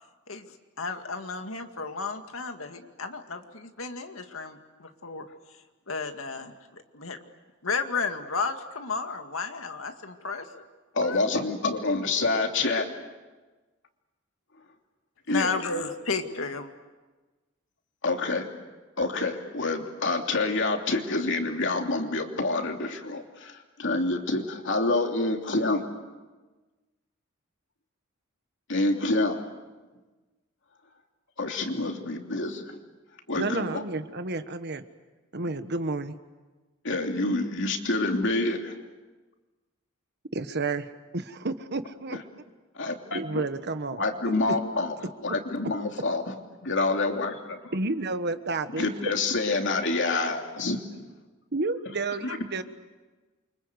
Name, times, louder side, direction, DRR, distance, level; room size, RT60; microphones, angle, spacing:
voice 1, 0.8-5.3 5.9-6.6 6.9-7.2 7.6-10.5 11.0-11.3 15.3-16.7, left 4 dB, 80° left, 6 dB, 2.1 m, -33 dB
voice 2, 10.9-12.9 15.3-15.5 18.0-18.5 19.0-25.8 28.7-29.4 31.4-32.8 33.3-33.8 36.8-38.8 42.7-43.2 44.0-44.9 45.2-46.3 46.6-47.7 48.8-50.8 52.2-52.4, left 2 dB, 65° left, 3 dB, 3.0 m, -27 dB
voice 3, 33.4-34.8 35.3-36.1 40.3-42.2 43.1-44.5 47.7-49.0 51.5-52.6, right 3 dB, 55° right, 10 dB, 1.3 m, -31 dB
29.0 x 25.0 x 8.1 m, 1.2 s
head